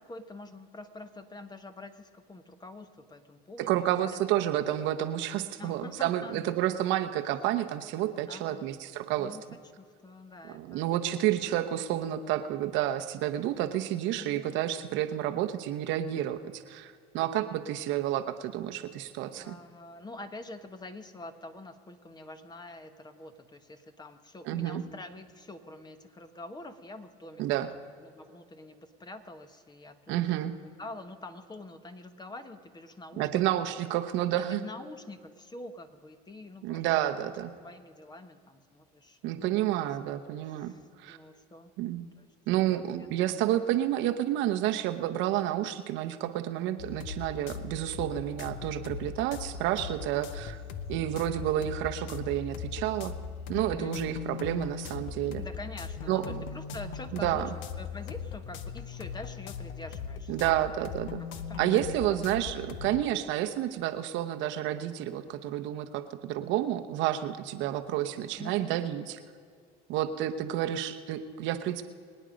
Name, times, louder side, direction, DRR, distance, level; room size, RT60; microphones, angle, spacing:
voice 1, 0.0-4.3 5.6-6.9 8.3-8.7 9.2-11.8 14.1-14.6 19.4-27.7 28.0-30.5 30.8-33.4 34.3-36.8 37.6-39.5 39.8-40.0 40.5-41.7 42.2-42.3 42.6-43.3 53.8-54.2 55.4-57.5 57.8-62.3 68.4-68.9, left 2 dB, 20° left, 9 dB, 1.3 m, -46 dB
voice 2, 3.6-9.4 10.5-19.5 24.5-24.8 27.4-27.7 30.1-30.5 33.2-34.6 36.6-37.5 39.2-40.7 41.0-41.2 41.8-42.1 42.5-50.6 50.9-53.1 53.5-55.4 56.1-56.4 57.1-57.5 60.3-61.2 61.6-69.2 69.9-71.8, right 12 dB, 70° right, 7 dB, 1.0 m, -30 dB
sound 1, 46.8-63.0, left 7 dB, 70° left, 1.0 m, -39 dB
24.0 x 9.2 x 5.2 m, 2.2 s
supercardioid pair, 85°, 20 cm